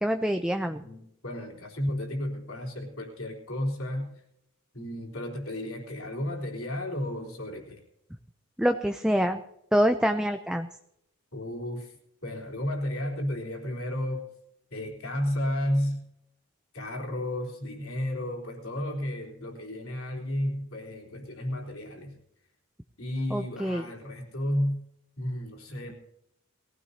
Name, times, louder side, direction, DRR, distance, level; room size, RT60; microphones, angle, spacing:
voice 1, 0.0-0.8 8.6-9.4 9.7-10.7 23.3-23.8, equal, 5° right, 6 dB, 0.4 m, -25 dB
voice 2, 0.8-4.1 4.7-7.8 11.3-11.9 12.2-14.2 14.7-16.0 16.7-22.2 23.0-24.8 25.2-25.9, left 1 dB, 65° left, 0 dB, 3.8 m, -32 dB
21.5 x 15.5 x 2.8 m, 0.79 s
head